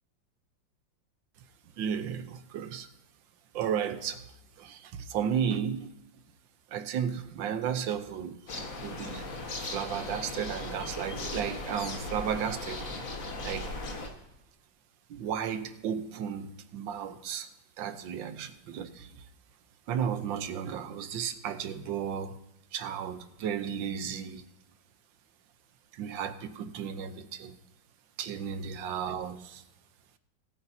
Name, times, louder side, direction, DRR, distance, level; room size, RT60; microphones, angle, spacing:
voice 1, 1.8-2.9 3.5-4.3 4.6-5.9 6.7-8.5 8.8-9.3 9.6-12.9 13.4-13.7 15.1-17.5 17.8-19.3 19.9-22.4 22.7-24.5 25.9-27.6 28.2-29.6, right 8 dB, 80° right, 1.5 m, -34 dB
sound 1, 8.5-14.1, left 2 dB, 45° left, 1.8 m, -38 dB
19.5 x 8.9 x 2.8 m
omnidirectional pair, 2.0 m